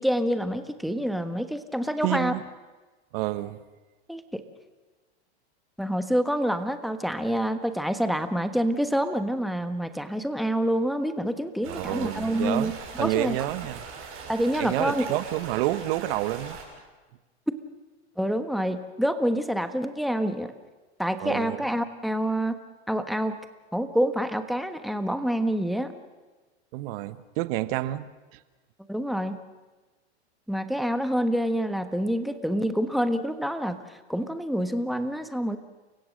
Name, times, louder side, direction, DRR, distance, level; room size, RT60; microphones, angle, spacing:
voice 1, 0.0-2.3 4.1-4.4 5.8-12.7 13.0-13.3 14.3-15.0 18.2-20.5 21.0-22.6 22.9-23.4 23.7-25.9 28.9-29.4 30.5-35.6, equal, ahead, 9 dB, 1.3 m, -27 dB
voice 2, 2.0-2.4 3.1-3.6 11.7-13.8 14.6-16.6 21.2-21.6 26.7-28.4, right 16 dB, 55° right, 14 dB, 1.2 m, -29 dB
sound 1, 11.6-16.6, right 5 dB, 40° right, 6.9 m, -41 dB
29.5 x 16.0 x 6.5 m, 1.2 s
hypercardioid pair, 110°, 34 cm